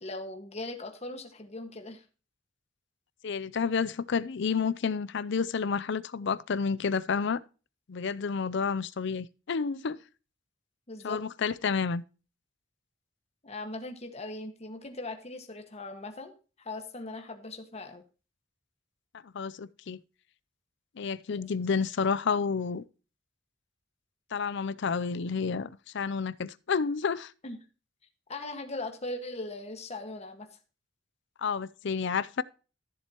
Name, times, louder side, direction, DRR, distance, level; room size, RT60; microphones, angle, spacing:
voice 1, 0.0-2.0 10.9-11.2 13.4-16.3 16.6-18.0 21.3-21.4 27.4-27.6 28.3-30.5, left 2 dB, 35° left, 1.6 m, -39 dB
voice 2, 3.2-7.4 7.9-10.0 11.0-12.0 19.2-20.0 21.0-22.8 24.3-27.3 31.4-32.4, left 5 dB, 65° left, 0.5 m, -30 dB
14.0 x 7.5 x 2.9 m
head